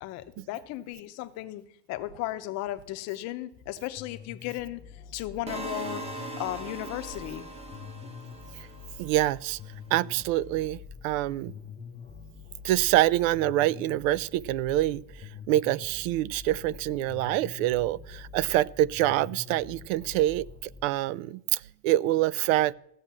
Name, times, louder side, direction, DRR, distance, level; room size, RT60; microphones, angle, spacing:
voice 1, 0.0-1.6 1.9-6.0 6.4-7.4, left 15 dB, 40° left, 0.7 m, -35 dB
sound 1, 4.0-20.8, left 6 dB, 15° left, 0.4 m, -46 dB
sound 2, 5.5-9.5, right 2 dB, 15° right, 1.0 m, -40 dB
voice 2, 9.0-9.6 9.9-11.5 12.6-15.0 15.5-22.7, right 15 dB, 80° right, 0.5 m, -26 dB
15.0 x 6.5 x 7.3 m
cardioid pair, 170°, 39 cm